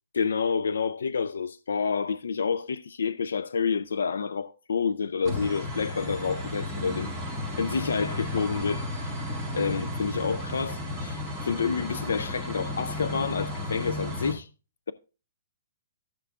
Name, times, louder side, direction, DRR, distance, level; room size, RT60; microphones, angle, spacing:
voice 1, 0.1-7.2 7.6-8.8 9.5-14.5, left 5 dB, 90° left, 0.4 m, -29 dB
sound 1, 5.2-14.3, left 1 dB, 20° left, 5.3 m, -33 dB
14.5 x 6.8 x 2.4 m
hypercardioid pair, 165°, 0 cm